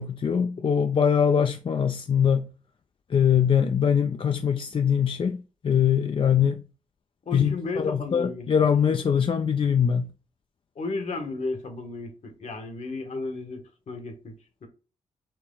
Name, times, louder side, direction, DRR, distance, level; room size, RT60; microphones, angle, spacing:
voice 1, 0.0-2.5 3.1-6.6 7.3-10.1, left 7 dB, 40° left, 0.4 m, -23 dB
voice 2, 7.3-8.4 10.7-14.3 14.6-14.7, left 3 dB, 60° left, 1.3 m, -33 dB
4.5 x 2.9 x 3.8 m
cardioid pair, 60°, 13 cm